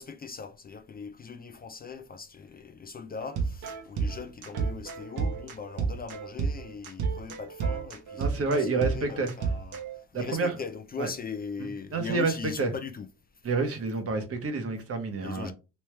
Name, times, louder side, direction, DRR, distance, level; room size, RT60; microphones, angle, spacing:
voice 1, 0.0-9.8 10.1-13.1 15.2-15.5, left 5 dB, 30° left, 0.4 m, -40 dB
sound 1, 3.2-10.0, right 5 dB, 85° right, 1.0 m, -31 dB
voice 2, 8.2-9.3 10.1-10.5 11.0-11.1 11.9-12.3 12.6-12.7 13.4-15.5, right 3 dB, 50° right, 1.1 m, -28 dB
3.2 x 3.0 x 3.3 m
cardioid pair, 90°, 30 cm